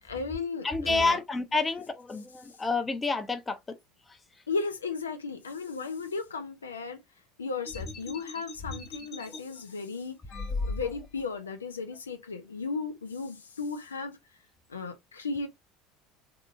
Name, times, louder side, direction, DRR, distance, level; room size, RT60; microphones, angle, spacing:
voice 1, 0.0-1.2 4.5-7.0 7.4-10.2 10.7-14.2 14.7-15.5, left 4 dB, 80° left, 0.5 m, -35 dB
voice 2, 0.6-3.6 9.3-9.4 10.5-10.6, left 3 dB, 20° left, 0.7 m, -29 dB
sound 1, 7.6-9.4 10.3-11.2, left 3 dB, 50° left, 1.2 m, -37 dB
3.4 x 2.8 x 2.4 m
figure-of-eight pair, 70°, 0 cm